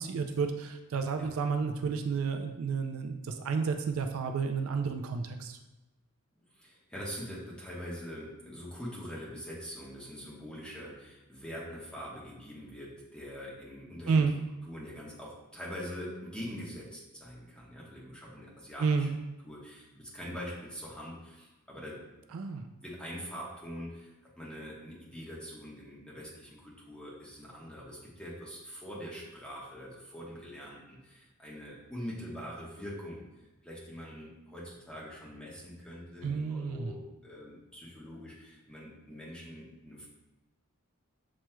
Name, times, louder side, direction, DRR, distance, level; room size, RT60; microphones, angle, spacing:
voice 1, 0.0-5.6 14.1-14.3 18.8-19.1 22.3-22.6 36.2-36.9, right 5 dB, 75° right, 5 dB, 0.4 m, -31 dB
voice 2, 6.5-19.1 19.4-22.0 22.7-33.2 33.6-40.1, equal, 5° left, -6 dB, 1.0 m, -44 dB
7.2 x 3.0 x 2.2 m, 1.0 s
head